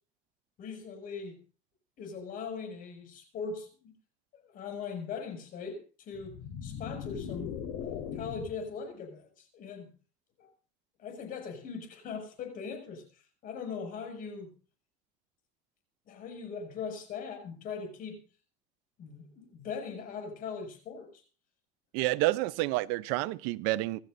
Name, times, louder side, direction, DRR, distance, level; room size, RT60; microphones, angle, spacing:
voice 1, 0.6-1.4 2.0-3.9 4.4-7.6 8.1-9.9 10.4-10.5 11.0-14.5 16.1-18.2 19.0-21.2, left 5 dB, 50° left, 6.9 m, -40 dB
sound 1, 6.1-8.7, left 8 dB, 80° left, 4.3 m, -39 dB
voice 2, 21.9-24.0, right 19 dB, 90° right, 0.7 m, -29 dB
27.0 x 13.0 x 2.7 m
cardioid pair, 135°, 18 cm